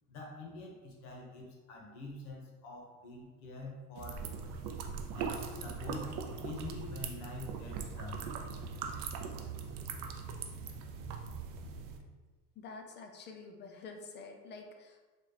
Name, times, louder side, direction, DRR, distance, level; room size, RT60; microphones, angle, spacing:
voice 1, 0.1-4.2 5.1-6.1 6.4-8.2, left 2 dB, 60° left, -1 dB, 1.2 m, -46 dB
sound 1, 4.0-12.0, right 5 dB, 45° right, 0.5 m, -40 dB
voice 2, 12.6-15.0, left 4 dB, 25° left, 3 dB, 0.4 m, -48 dB
4.0 x 2.4 x 3.3 m, 1.3 s
hypercardioid pair, 95°, 47 cm